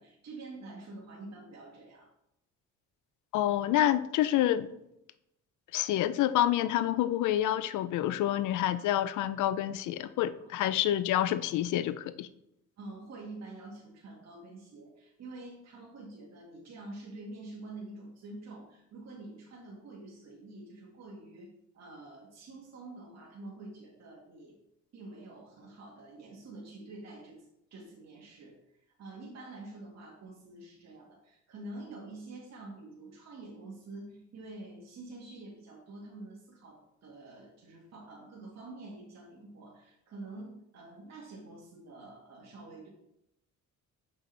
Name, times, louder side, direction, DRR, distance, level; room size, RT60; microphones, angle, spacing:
voice 1, 0.0-2.1 10.4-10.6 12.8-24.6 24.9-42.9, right 2 dB, 60° right, 1.8 m, -47 dB
voice 2, 3.3-4.7 5.7-12.3, left 12 dB, 80° left, 0.5 m, -28 dB
6.8 x 5.2 x 3.3 m
cardioid pair, 90°, 30 cm